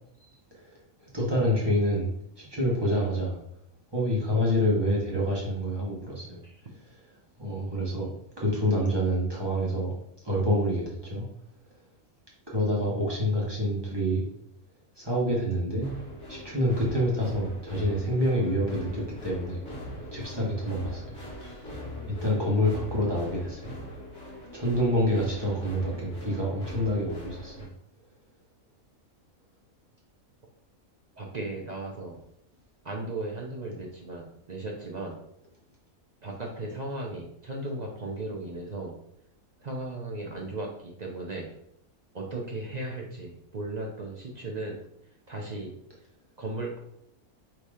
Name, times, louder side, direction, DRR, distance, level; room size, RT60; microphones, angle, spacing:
voice 1, 1.1-2.1 2.4-3.4 3.9-6.4 7.4-8.1 8.4-9.9 10.2-11.2 12.5-14.2 15.0-15.9 16.3-19.6 20.1-21.1 22.2-23.7 24.5-27.7, equal, 20° right, -5 dB, 1.1 m, -27 dB
sound 1, 15.8-27.6, left 1 dB, 50° left, 1.7 m, -42 dB
voice 2, 31.2-32.2 32.8-35.2 36.2-39.0 39.6-41.5 42.1-44.8 45.3-45.8 46.4-46.8, right 2 dB, 45° right, -1 dB, 0.6 m, -36 dB
3.7 x 2.8 x 4.8 m, 0.75 s
omnidirectional pair, 1.5 m